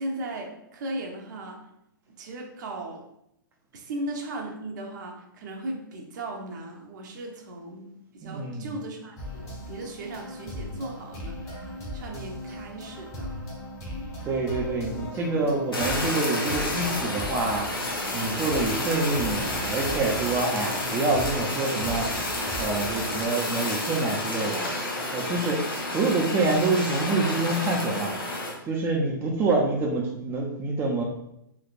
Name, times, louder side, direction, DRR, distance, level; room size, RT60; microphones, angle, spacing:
voice 1, 0.0-1.7 2.1-3.1 3.7-11.5 11.9-13.4, right 1 dB, 55° right, 1 dB, 0.8 m, -37 dB
voice 2, 8.2-8.8 14.2-17.7 18.1-22.1 22.6-24.7 25.1-28.1 28.7-31.0, right 3 dB, 20° right, -1 dB, 0.5 m, -26 dB
sound 1, 9.2-23.3, left 1 dB, 25° left, 1.0 m, -38 dB
Fire, 15.7-28.5, left 1 dB, 90° left, 0.9 m, -30 dB
3.2 x 3.1 x 2.4 m, 0.79 s
figure-of-eight pair, 115°, 12 cm